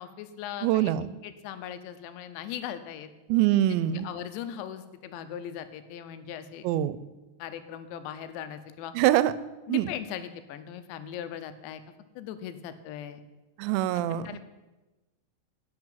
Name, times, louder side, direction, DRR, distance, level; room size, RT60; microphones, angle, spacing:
voice 1, 0.0-0.9 1.2-3.1 4.0-6.7 7.4-8.9 9.7-11.8 12.2-13.2 14.1-14.4, left 9 dB, 90° left, 10 dB, 3.1 m, -39 dB
voice 2, 0.6-1.1 3.3-4.1 6.6-7.0 9.0-9.3 9.7-9.9 13.6-14.3, right 13 dB, 90° right, 16 dB, 2.9 m, -24 dB
10.5 x 6.6 x 8.8 m, 1.1 s
omnidirectional pair, 5.1 m